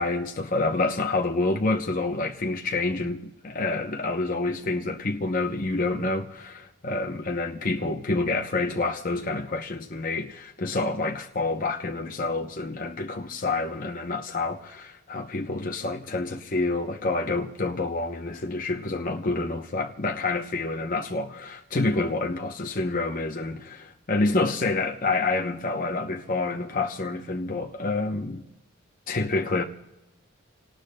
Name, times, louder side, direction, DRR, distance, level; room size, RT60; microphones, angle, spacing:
voice 1, 0.0-28.4 29.1-29.6, left 3 dB, 40° left, 0.7 m, -28 dB
29.0 x 18.5 x 2.2 m
head